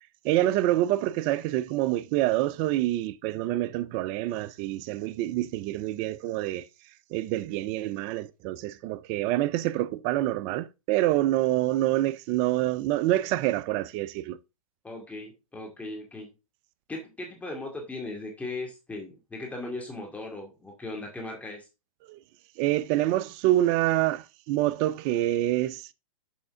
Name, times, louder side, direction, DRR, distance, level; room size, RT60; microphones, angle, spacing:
voice 1, 0.2-6.7 7.1-14.4 22.1-22.2 22.6-25.9, right 15 dB, 30° right, 0.4 m, -26 dB
voice 2, 14.8-16.3 16.9-21.7, left 2 dB, 5° left, 2.2 m, -38 dB
7.1 x 5.3 x 3.7 m
hypercardioid pair, 130°, 18 cm